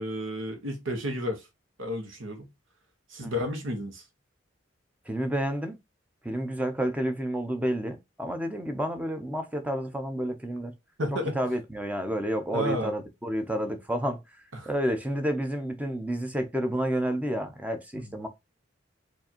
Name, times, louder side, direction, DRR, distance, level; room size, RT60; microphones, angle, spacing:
voice 1, 0.0-1.5 1.8-2.5 3.1-4.0 11.0-11.4 12.5-12.9 14.5-14.7 18.0-18.1, equal, 80° right, 1.1 m, -32 dB
voice 2, 5.1-5.8 6.2-10.7 11.3-14.2 14.7-18.3, equal, 5° right, 0.6 m, -30 dB
4.5 x 2.6 x 2.9 m
head